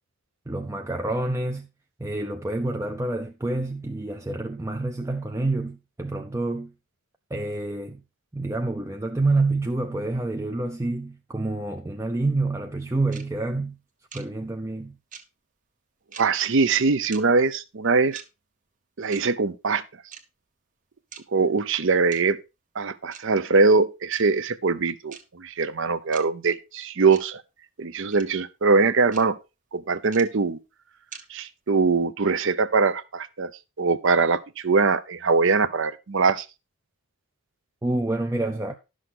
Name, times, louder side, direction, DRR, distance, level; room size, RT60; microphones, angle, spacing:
voice 1, 0.5-1.7 2.0-6.7 7.3-8.0 8.3-13.8 14.1-15.0 37.8-38.7, right 2 dB, 15° right, 0.4 m, -27 dB
sound 1, 13.1-13.2 14.1-14.2 15.1-15.2 16.1-16.2 17.1-17.2 18.1-18.2 19.1-19.2 20.1-20.2 21.1-21.2 22.1-22.2 23.1-23.2 24.1-24.2 25.1-25.2 26.1-26.2 27.1-27.2 28.1-28.2 29.1-29.2 30.1-30.2 31.1-31.2, right 6 dB, 35° right, 0.9 m, -41 dB
voice 2, 16.2-18.2 19.0-19.8 21.3-22.4 22.8-27.4 27.8-29.4 29.7-30.6 31.3-33.5 33.8-36.5, right 4 dB, 55° right, 0.6 m, -22 dB
11.0 x 6.3 x 3.8 m
head